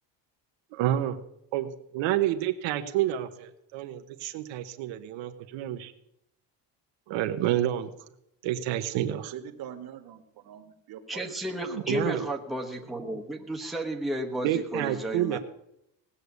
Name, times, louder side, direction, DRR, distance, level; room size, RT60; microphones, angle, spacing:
voice 1, 0.8-1.2 1.5-5.9 7.1-7.9 8.4-9.3 11.7-12.3 14.4-15.4, right 12 dB, 75° right, 7 dB, 1.2 m, -29 dB
voice 2, 9.1-11.6, right 10 dB, 50° right, 7 dB, 1.7 m, -44 dB
voice 3, 11.1-15.4, right 1 dB, ahead, 0 dB, 1.1 m, -33 dB
18.5 x 6.7 x 8.2 m, 0.80 s
cardioid pair, 160°, 45 cm